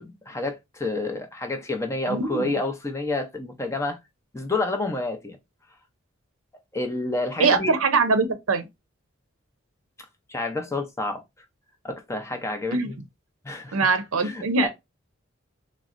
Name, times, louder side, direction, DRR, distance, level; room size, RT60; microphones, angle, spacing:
voice 1, 0.0-4.0 4.3-5.4 6.7-7.7 10.3-11.2 11.8-12.9 13.4-13.8 14.2-14.7, left 2 dB, 15° left, 0.4 m, -29 dB
voice 2, 2.1-2.5 7.4-8.7 12.7-12.9 13.7-14.7, right 4 dB, 85° right, 0.6 m, -22 dB
3.8 x 2.0 x 2.4 m
head